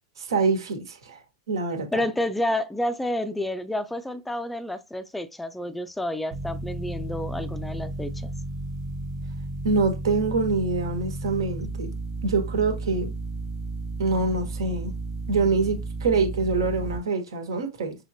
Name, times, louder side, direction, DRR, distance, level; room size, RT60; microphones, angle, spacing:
voice 1, 0.2-1.2 1.5-2.0 9.6-11.9 12.2-13.1 14.0-14.9 15.3-18.0, right 3 dB, 75° right, 1.4 m, -25 dB
voice 2, 1.9-8.3, left 1 dB, 5° left, 0.4 m, -29 dB
sound 1, 6.3-17.0, right 2 dB, 30° right, 1.1 m, -33 dB
5.7 x 2.9 x 2.7 m
hypercardioid pair, 100°, 2 cm